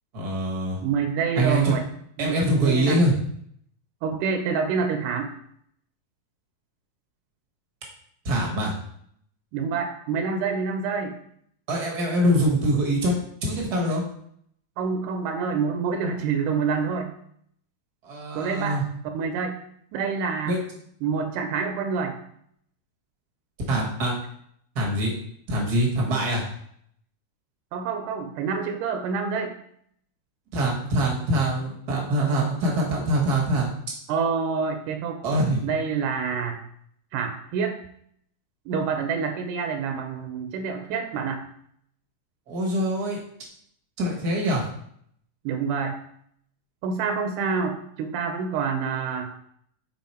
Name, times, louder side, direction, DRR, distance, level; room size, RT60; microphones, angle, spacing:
voice 1, 0.1-0.8 1.4-1.8 2.2-3.1 8.2-8.7 11.7-13.1 13.4-14.0 18.0-18.8 20.5-20.6 23.7-24.1 24.7-25.1 25.5-26.4 30.5-33.7 35.2-35.6 42.5-43.2 44.0-44.6, right 1 dB, 65° right, -2 dB, 0.9 m, -23 dB
voice 2, 0.8-1.8 2.2-3.0 4.0-5.3 9.5-11.2 14.8-17.1 18.4-18.8 19.1-19.6 19.9-20.6 21.0-22.2 27.7-29.6 34.1-35.2 35.6-36.6 37.1-37.8 38.7-41.4 45.4-46.0 46.8-49.3, right 5 dB, 80° right, 5 dB, 2.1 m, -27 dB
6.4 x 4.1 x 4.2 m, 0.68 s
omnidirectional pair, 3.6 m